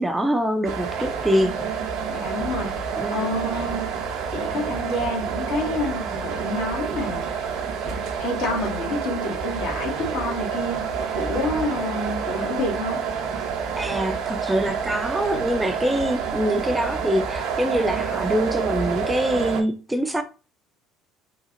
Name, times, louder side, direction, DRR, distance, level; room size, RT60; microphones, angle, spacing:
voice 1, 0.0-1.6 3.0-3.2 13.8-20.2, equal, 10° right, 0.5 m, -24 dB
sound 1, 0.6-19.6, right 6 dB, 65° right, 0.7 m, -28 dB
voice 2, 2.1-2.7 3.1-3.9 4.3-7.3 8.2-10.8 11.1-13.0, left 2 dB, 70° left, 1.4 m, -28 dB
3.8 x 2.3 x 2.9 m
hypercardioid pair, 60°, 0 cm